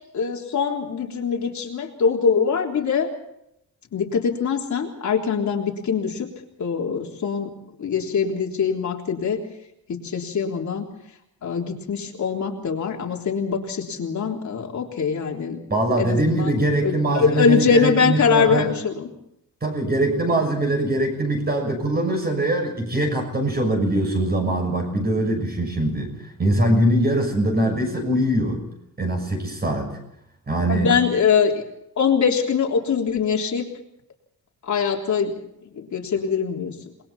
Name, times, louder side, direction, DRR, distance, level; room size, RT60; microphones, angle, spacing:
voice 1, 0.1-3.1 3.9-6.3 6.6-7.5 7.8-9.4 9.9-10.9 11.4-15.6 16.0-19.1 20.4-20.5 30.7-31.5 32.0-33.7 34.6-35.4 35.7-36.7, left 6 dB, 50° left, 0 dB, 3.6 m, -23 dB
voice 2, 15.7-18.7 19.6-26.1 26.4-28.6 29.0-29.9 30.5-30.9, right 1 dB, 25° right, 4 dB, 6.5 m, -22 dB
28.5 x 21.5 x 4.3 m, 0.79 s
wide cardioid pair, 165°, 36 cm